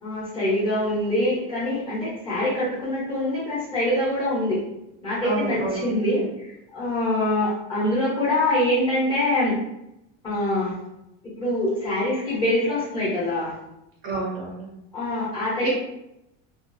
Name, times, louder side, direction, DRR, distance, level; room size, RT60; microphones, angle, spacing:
voice 1, 0.0-4.6 5.0-9.6 10.2-10.7 11.4-13.6 14.9-15.8, left 1 dB, 15° left, -8 dB, 0.5 m, -24 dB
voice 2, 5.2-6.3 14.0-14.7 15.6-15.8, right 2 dB, 30° right, -2 dB, 0.4 m, -29 dB
2.4 x 2.3 x 2.4 m, 0.86 s
cardioid pair, 170°, 30 cm